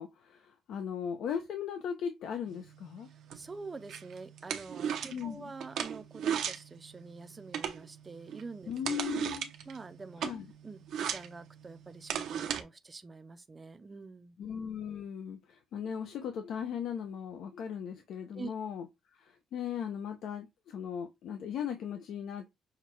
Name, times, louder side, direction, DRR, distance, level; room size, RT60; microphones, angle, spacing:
voice 1, 0.0-3.1 5.1-5.5 8.7-9.5 10.2-10.5 14.4-18.9 19.1-22.5, left 8 dB, 70° left, 0.5 m, -38 dB
sound 1, 2.5-12.6, right 8 dB, 75° right, 0.6 m, -38 dB
voice 2, 3.3-8.7 9.0-9.1 9.7-10.2 10.6-14.4 18.3-18.5, right 4 dB, 20° right, 0.5 m, -46 dB
5.7 x 2.2 x 3.0 m
cardioid pair, 165°, 0 cm